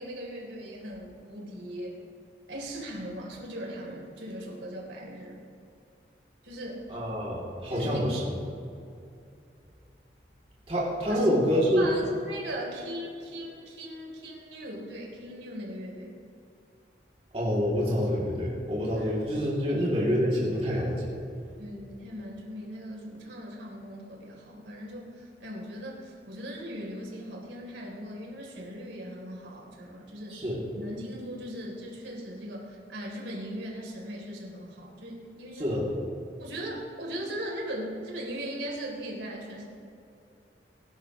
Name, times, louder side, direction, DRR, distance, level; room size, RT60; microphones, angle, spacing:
voice 1, 0.0-2.0 2.5-5.4 6.4-6.9 7.7-8.1 11.0-16.1 19.0-19.1 19.7-19.9 21.6-30.4 30.7-35.7 36.4-39.6, equal, 90° right, -2 dB, 3.5 m, -39 dB
voice 2, 6.9-8.2 10.7-11.9 17.3-21.1 30.3-30.6 35.6-35.8, equal, 35° right, -6 dB, 2.9 m, -27 dB
22.0 x 11.5 x 3.2 m, 2.6 s
head